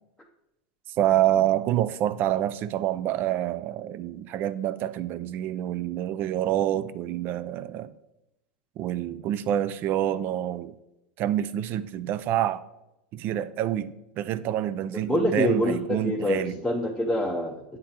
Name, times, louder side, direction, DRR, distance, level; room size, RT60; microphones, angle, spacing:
voice 1, 1.0-7.9 8.8-10.7 11.2-12.6 13.1-16.6, right 12 dB, 40° right, 0.4 m, -27 dB
voice 2, 14.9-17.6, left 1 dB, 5° left, 0.6 m, -26 dB
8.4 x 3.7 x 4.3 m
hypercardioid pair, 120°, 5 cm